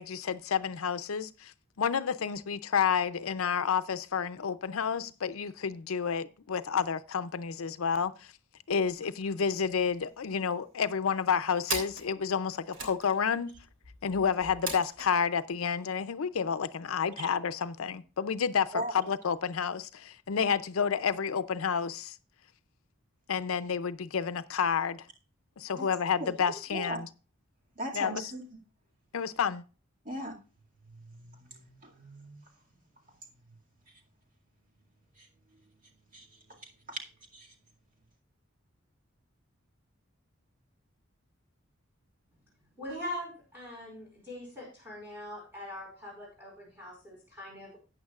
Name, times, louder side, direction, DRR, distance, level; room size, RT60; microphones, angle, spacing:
voice 1, 0.0-8.1 8.7-13.5 14.0-22.2 23.3-25.1 25.6-27.1 27.9-28.3 29.1-29.6, left 6 dB, 90° left, 0.5 m, -30 dB
sound 1, 8.9-9.2 9.5-9.6 9.8-10.5 11.0-15.1, right 3 dB, 70° right, 3.2 m, -40 dB
voice 2, 27.8-28.4 30.1-30.4 30.9-32.4 35.2-35.3 36.1-37.0 37.3-37.5, right 1 dB, 40° right, 2.2 m, -39 dB
voice 3, 42.8-47.8, left 1 dB, 10° right, 5.0 m, -42 dB
14.0 x 9.0 x 2.4 m
head